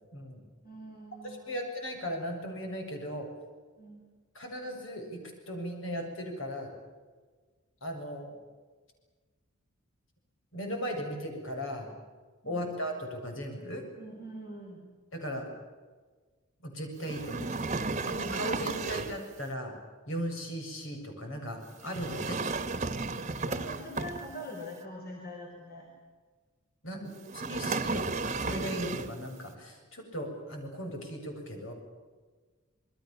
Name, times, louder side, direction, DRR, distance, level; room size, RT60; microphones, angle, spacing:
voice 1, 0.1-0.4 1.2-3.3 4.3-6.7 7.8-8.3 10.5-11.9 12.4-13.8 15.1-15.5 16.6-17.5 18.0-19.7 20.1-22.4 23.1-23.3 26.8-31.7, equal, 65° left, 3 dB, 7.6 m, -37 dB
voice 2, 0.6-1.6 3.8-4.1 14.0-14.8 22.7-22.8 23.4-25.9 26.9-27.3, equal, 45° left, 0 dB, 4.9 m, -44 dB
sound 1, 17.0-19.3 21.8-24.6 27.3-29.3, right 3 dB, 35° right, 1.6 m, -33 dB
29.0 x 22.0 x 7.3 m, 1.4 s
head